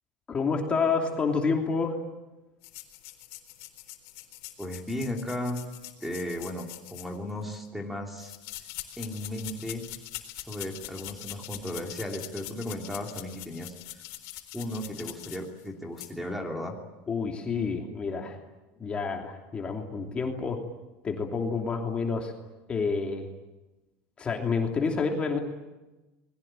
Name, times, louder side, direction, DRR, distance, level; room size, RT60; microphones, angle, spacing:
voice 1, 0.3-1.9 17.1-18.4 18.8-20.6 21.0-22.3 22.7-23.3 24.2-25.4, left 5 dB, 20° left, 2 dB, 3.0 m, -28 dB
sound 1, 2.6-7.5 8.2-15.7 16.0-16.1, left 16 dB, 60° left, 4.1 m, -43 dB
voice 2, 4.6-5.6 6.0-8.4 9.0-9.8 10.3-13.7 14.5-16.8, left 1 dB, 5° right, 2 dB, 3.0 m, -35 dB
29.5 x 21.5 x 9.0 m, 1.1 s
cardioid pair, 165°, 6 cm